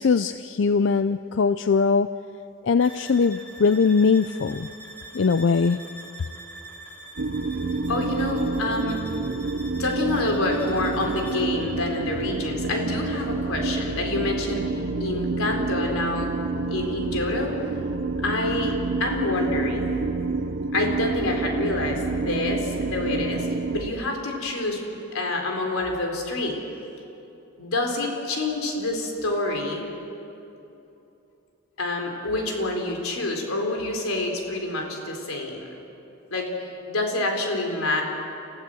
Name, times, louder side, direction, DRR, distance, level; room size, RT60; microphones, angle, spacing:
voice 1, 0.0-2.1 2.6-4.7 5.1-5.8, left 5 dB, 60° left, 12 dB, 0.4 m, -21 dB
sound 1, 2.8-11.6, right 2 dB, 10° left, 2.5 m, -44 dB
sound 2, 7.2-23.9, right 3 dB, 65° right, 0.9 m, -28 dB
voice 2, 7.9-9.0 9.8-16.3 16.7-17.6 18.2-19.9 20.7-24.8 25.1-26.6 27.6-29.8 31.8-35.7 36.3-38.0, left 2 dB, 85° left, 2 dB, 4.1 m, -27 dB
29.5 x 15.5 x 7.8 m, 2.9 s
head